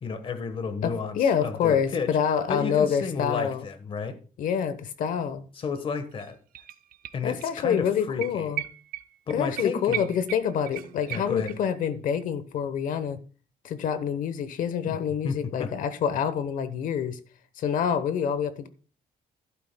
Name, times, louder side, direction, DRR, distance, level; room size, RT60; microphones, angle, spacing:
voice 1, 0.0-2.1 2.5-4.1 5.5-6.4 7.1-8.5 9.3-10.1 11.1-11.5 14.9-15.0 15.2-15.7, left 5 dB, 35° left, 1.2 m, -32 dB
voice 2, 0.8-3.6 4.4-5.5 7.2-8.6 9.3-13.2 13.6-17.2 17.6-18.7, left 8 dB, 65° left, 1.0 m, -27 dB
sound 1, 5.8-5.9 6.1-7.5 7.8-7.9 8.2-11.9 12.2-12.3, right 16 dB, 75° right, 0.6 m, -37 dB
12.5 x 11.5 x 2.2 m
cardioid pair, 175°, 15 cm